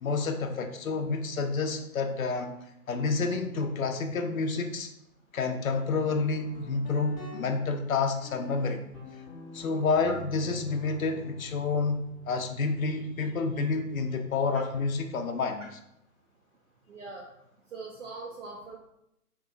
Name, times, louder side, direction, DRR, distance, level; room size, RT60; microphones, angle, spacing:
voice 1, 0.0-2.5 2.9-4.9 5.3-8.8 9.5-15.7, left 4 dB, 60° left, 6 dB, 0.5 m, -29 dB
Guitar, 6.2-15.7, left 1 dB, 30° left, 0.9 m, -46 dB
voice 2, 16.9-17.3 17.7-18.8, right 3 dB, 55° right, 0 dB, 0.5 m, -41 dB
2.9 x 2.5 x 3.4 m, 0.80 s
figure-of-eight pair, 140°, 46 cm